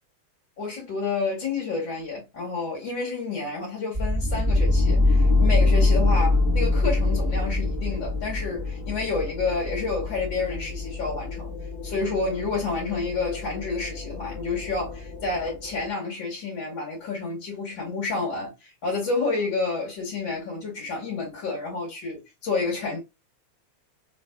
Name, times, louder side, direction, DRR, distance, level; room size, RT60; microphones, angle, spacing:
voice 1, 0.6-11.5 11.8-23.0, left 4 dB, 45° left, 2.4 m, -29 dB
sound 1, 3.9-15.9, left 2 dB, 10° right, 1.3 m, -25 dB
4.6 x 3.2 x 2.2 m
omnidirectional pair, 3.4 m